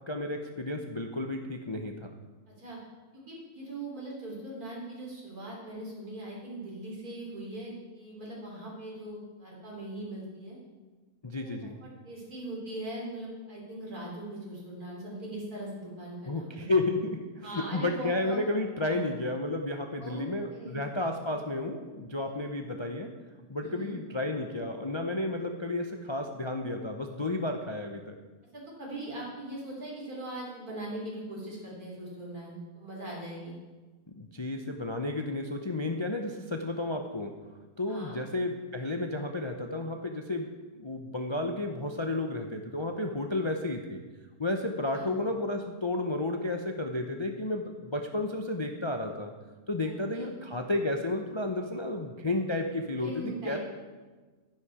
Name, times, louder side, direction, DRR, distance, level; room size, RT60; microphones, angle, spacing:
voice 1, 0.1-2.1 11.2-11.7 16.2-23.1 23.5-28.2 34.2-37.3 37.8-40.5 40.7-44.0 44.4-49.3 49.7-53.6, left 2 dB, 30° left, 4 dB, 0.5 m, -32 dB
voice 2, 3.1-10.6 11.4-16.7 17.4-18.4 18.8-19.0 20.0-20.8 21.3-21.4 23.6-23.9 28.5-33.5 37.9-38.2 44.9-45.1 49.8-50.3 53.0-53.6, right 1 dB, 75° right, -4 dB, 4.2 m, -40 dB
11.5 x 10.5 x 4.9 m, 1.3 s
omnidirectional pair, 1.6 m